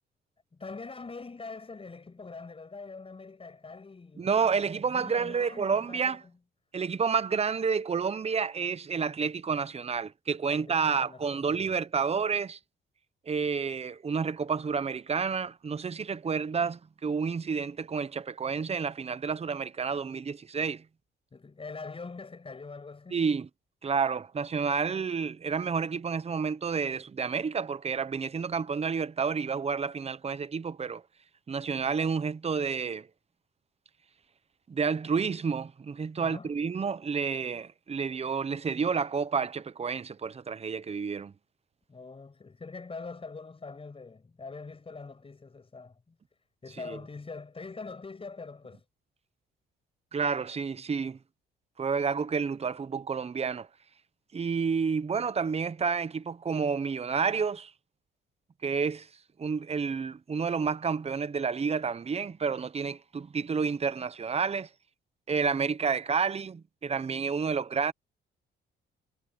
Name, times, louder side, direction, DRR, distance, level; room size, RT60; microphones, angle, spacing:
voice 1, 0.5-6.3 10.5-11.7 21.3-23.2 36.2-36.5 41.9-46.2 46.6-48.8, left 4 dB, 30° left, 6.8 m, -44 dB
voice 2, 4.2-6.2 6.7-12.6 13.3-20.8 23.1-23.5 23.8-31.0 31.5-33.1 34.7-41.3 46.9-47.0 50.1-51.2 51.8-53.7 54.3-57.7 58.6-59.1 59.4-64.7 65.3-67.9, right 5 dB, 30° right, 1.0 m, -30 dB
cardioid pair, 90°, 20 cm